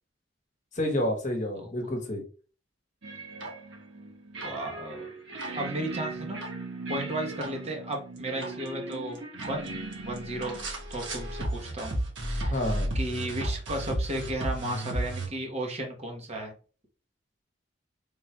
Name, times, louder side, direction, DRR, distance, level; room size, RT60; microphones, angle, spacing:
voice 1, 0.7-2.2 12.5-12.9, left 1 dB, 40° left, 2 dB, 1.0 m, -29 dB
voice 2, 1.6-1.9 4.4-5.1 5.5-6.4 6.9-9.8 10.0-10.6 10.9-11.9 12.3-12.6 12.9-16.5, right 1 dB, 35° right, 2 dB, 0.9 m, -34 dB
sound 1, 3.0-15.3, right 1 dB, 70° right, 1.2 m, -35 dB
3.5 x 2.3 x 4.2 m, 0.38 s
head